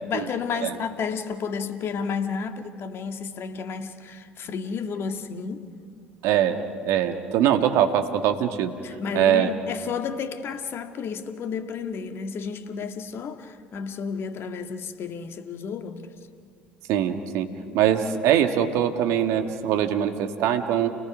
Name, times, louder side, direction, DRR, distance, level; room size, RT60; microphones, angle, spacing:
voice 1, 0.0-5.6 8.8-16.0 17.6-17.8, left 6 dB, 50° left, 7 dB, 1.9 m, -32 dB
voice 2, 6.2-8.7 9.1-9.5 16.9-17.5 17.7-20.9, right 10 dB, 60° right, 6 dB, 1.6 m, -22 dB
29.5 x 20.0 x 6.2 m, 2.1 s
hypercardioid pair, 65°, 5 cm